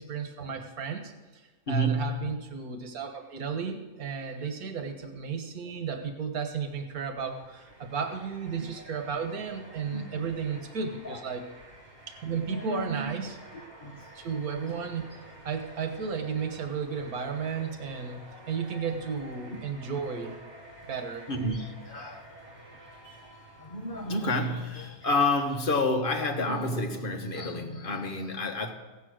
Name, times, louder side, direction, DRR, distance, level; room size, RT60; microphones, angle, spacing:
voice 1, 0.0-1.4 1.7-11.5 12.1-13.4 14.2-15.1 15.4-18.2 18.5-20.4 20.8-21.3, right 6 dB, 85° right, 5 dB, 1.7 m, -34 dB
voice 2, 1.7-2.2 4.4-4.5 8.6-9.0 9.9-10.3 11.0-11.3 12.4-13.2 13.8-14.0 18.9-19.0 19.5-19.6 21.3-22.3 23.6-28.7, left 1 dB, 40° left, 3 dB, 1.4 m, -30 dB
sound 1, 6.9-25.4, right 1 dB, 30° right, 3.5 m, -50 dB
16.0 x 8.4 x 6.3 m, 1.2 s
omnidirectional pair, 1.5 m